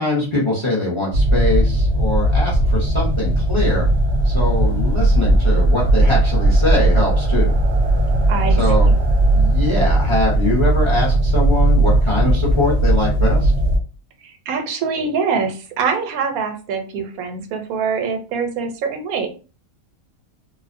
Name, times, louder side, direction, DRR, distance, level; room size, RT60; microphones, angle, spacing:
voice 1, 0.0-3.9 4.2-7.5 8.6-8.9 9.3-13.5, left 2 dB, 35° left, -4 dB, 0.5 m, -22 dB
sound 1, 1.1-13.8, right 1 dB, 65° right, 0.7 m, -17 dB
voice 2, 8.3-8.6 14.2-19.3, right 5 dB, 90° right, 5 dB, 1.0 m, -24 dB
2.4 x 2.0 x 2.5 m, 0.34 s
omnidirectional pair, 1.5 m